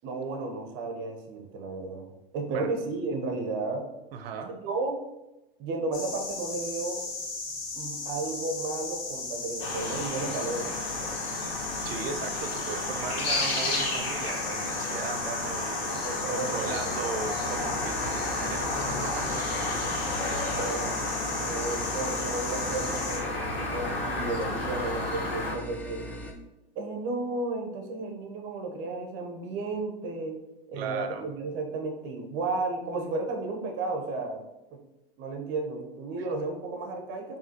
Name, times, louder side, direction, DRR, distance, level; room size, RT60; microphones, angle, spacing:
voice 1, 0.0-2.1 2.3-3.9 4.5-5.0 5.6-7.0 7.7-10.7 11.0-11.1 16.0-16.8 17.1-17.2 20.4-21.0 21.3-26.0 26.8-30.4 30.7-34.4 34.7-34.8 35.2-37.4, right 3 dB, 40° right, 3 dB, 0.9 m, -33 dB
voice 2, 4.1-4.5 11.8-16.0 16.3-21.0 21.4-21.6 30.7-31.2, right 6 dB, 75° right, 7 dB, 0.7 m, -38 dB
sound 1, 5.9-23.2, left 3 dB, 55° left, 1.5 m, -36 dB
sound 2, 9.6-25.5, left 2 dB, 80° left, 1.5 m, -32 dB
sound 3, 17.6-26.3, equal, 5° left, 0.3 m, -40 dB
4.8 x 2.8 x 2.9 m, 0.97 s
hypercardioid pair, 105°, 29 cm